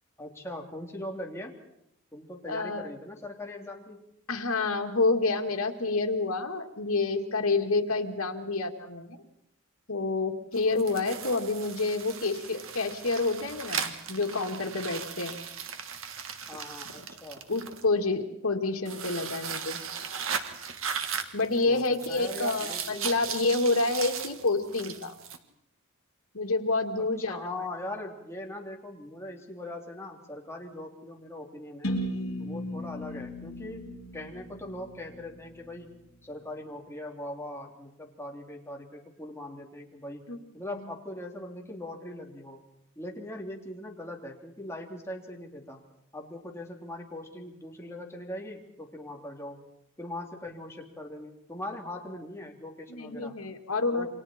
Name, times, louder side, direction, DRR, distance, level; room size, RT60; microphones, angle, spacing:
voice 1, 0.2-1.5 2.1-4.0 16.5-17.4 21.7-23.1 27.0-32.0 32.4-33.9 34.1-35.9 36.2-40.2 40.5-42.6 43.0-45.8 46.1-49.6 50.0-53.4 53.9-54.1, left 1 dB, 15° left, 0 dB, 3.0 m, -40 dB
voice 2, 2.5-2.9 4.3-9.2 9.9-15.4 17.5-19.8 21.3-25.1 26.3-27.5 40.3-40.4 40.8-40.9 52.9-54.1, left 3 dB, 85° left, 4 dB, 2.2 m, -28 dB
sound 1, 10.5-17.8 18.8-25.4, right 7 dB, 65° right, 1.7 m, -37 dB
sound 2, 31.8-35.7, equal, 70° left, 6.8 m, -36 dB
28.5 x 24.5 x 4.4 m, 0.78 s
head